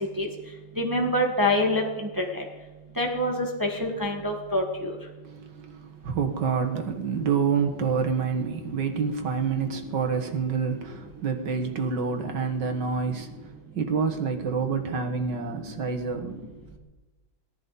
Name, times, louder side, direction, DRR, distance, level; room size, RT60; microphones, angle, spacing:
voice 1, 0.8-1.8 2.2-2.4 3.0-4.9, left 1 dB, 10° right, 1 dB, 1.6 m, -25 dB
voice 2, 5.2-16.5, right 6 dB, 65° right, 4 dB, 2.1 m, -28 dB
18.5 x 13.0 x 4.1 m, 1.1 s
omnidirectional pair, 2.1 m